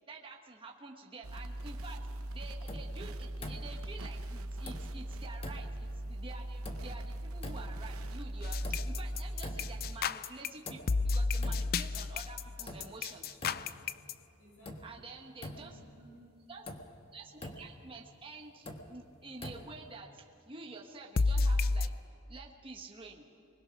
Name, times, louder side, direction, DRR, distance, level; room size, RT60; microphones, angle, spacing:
voice 1, 0.1-2.0 2.3-13.4 14.8-15.7 16.5-16.6 17.1-22.0 22.3-23.3, right 3 dB, 25° right, 0 dB, 1.3 m, -49 dB
sound 1, 1.2-10.0, right 1 dB, 70° right, 0.8 m, -40 dB
sound 2, 2.7-3.0 3.4-3.9 4.6-5.1 5.4-5.9 6.6-7.1 7.4-7.9 8.6-9.1 9.4-10.0 10.6-11.1 11.4-11.9 12.7-13.0 13.4-13.9 14.6-15.0 15.4-15.9 16.7-17.0 17.4-17.8 18.6-19.0 19.4-19.9, left 1 dB, 25° left, 1.3 m, -46 dB
sound 3, 8.4-14.1 21.2-21.9, left 3 dB, 45° left, 0.4 m, -31 dB
voice 2, 14.4-16.4, right 1 dB, 80° left, -3 dB, 6.9 m, -59 dB
25.0 x 20.5 x 6.0 m, 2.8 s
head